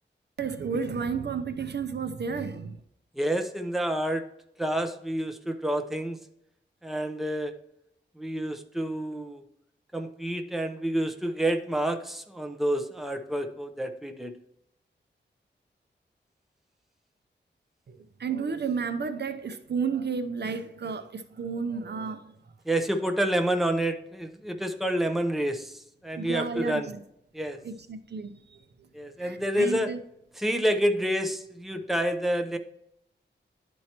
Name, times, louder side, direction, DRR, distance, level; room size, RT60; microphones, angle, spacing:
voice 1, 0.4-2.8 17.9-22.3 26.1-27.0 27.6-28.6 29.2-30.0, right 5 dB, 60° right, 10 dB, 0.6 m, -32 dB
voice 2, 3.2-4.2 4.6-6.2 6.8-7.5 8.2-9.4 9.9-14.3 22.6-26.9 27.3-27.6 28.9-29.9 30.4-32.6, right 1 dB, ahead, 5 dB, 0.8 m, -28 dB
11.0 x 4.6 x 2.9 m, 0.77 s
wide cardioid pair, 85°, 19 cm